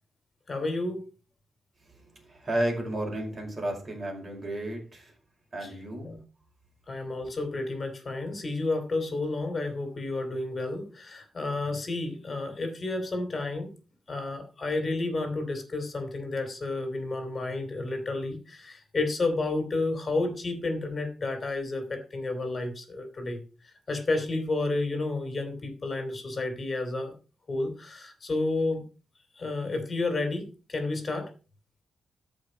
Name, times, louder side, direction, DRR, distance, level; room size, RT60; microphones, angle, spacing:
voice 1, 0.5-1.1 5.6-5.7 6.0-6.2 6.9-13.7 14.1-23.4 23.9-27.1 27.5-28.8 29.4-31.3, left 2 dB, 30° left, 6 dB, 2.9 m, -31 dB
voice 2, 1.8-5.1 5.5-6.1, right 1 dB, 30° right, 0 dB, 5.3 m, -33 dB
13.5 x 5.4 x 5.1 m, 0.35 s
wide cardioid pair, 145°, 0 cm